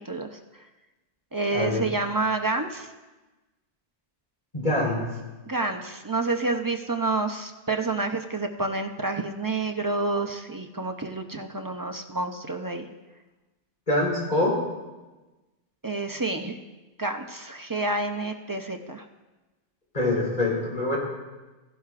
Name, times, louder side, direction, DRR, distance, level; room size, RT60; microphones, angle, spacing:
voice 1, 0.1-0.4 1.3-2.9 5.5-12.9 15.8-16.6 17.0-19.1, right 3 dB, 30° right, 5 dB, 0.4 m, -29 dB
voice 2, 1.5-1.8 4.5-5.0 13.9-14.6 19.9-21.0, left 2 dB, 45° left, -5 dB, 4.2 m, -24 dB
16.0 x 12.0 x 2.5 m, 1.1 s
omnidirectional pair, 1.1 m